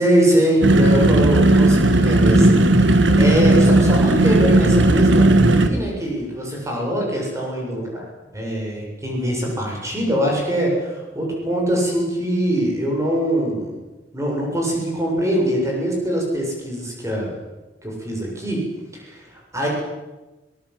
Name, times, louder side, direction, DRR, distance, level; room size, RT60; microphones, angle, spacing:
voice 1, 0.0-8.0 8.3-13.7 14.1-17.3 17.8-18.6 18.9-19.7, equal, 15° right, -2 dB, 7.6 m, -23 dB
sound 1, 0.6-5.7, right 2 dB, 75° right, 2.0 m, -15 dB
24.0 x 19.0 x 7.9 m, 1.1 s
head